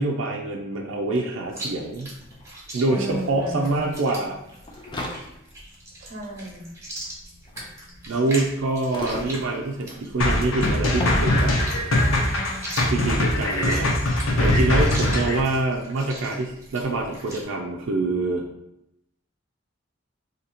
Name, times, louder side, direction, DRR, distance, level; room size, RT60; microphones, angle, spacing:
voice 1, 0.0-2.1 2.7-4.4 8.1-11.5 12.9-18.5, right 2 dB, 80° right, -1 dB, 0.4 m, -26 dB
sound 1, 1.2-1.3 1.4-11.9, left 2 dB, 25° left, 0.5 m, -38 dB
Chewing mastication, 1.5-17.4, right 1 dB, 15° right, 1.1 m, -39 dB
voice 2, 2.9-3.8 6.0-6.7 12.1-12.8, right 1 dB, 40° right, -1 dB, 0.8 m, -35 dB
sound 2, 10.2-15.4, left 1 dB, 90° left, 0.7 m, -22 dB
2.8 x 2.8 x 4.0 m, 0.84 s
head